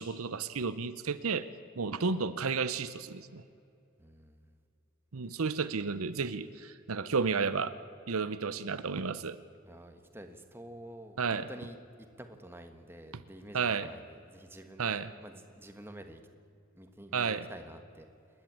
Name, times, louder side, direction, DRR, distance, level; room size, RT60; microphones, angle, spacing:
voice 1, 0.0-1.5 1.8-3.4 5.1-7.7 8.1-9.4 11.2-11.5 13.5-13.9 14.8-15.1 17.1-17.5, right 5 dB, 75° right, 13 dB, 0.8 m, -32 dB
voice 2, 4.0-4.4 9.6-11.8 12.2-14.9 15.2-16.2 16.7-18.1, right 1 dB, 10° right, 6 dB, 1.3 m, -49 dB
28.0 x 11.0 x 8.7 m, 2.5 s
head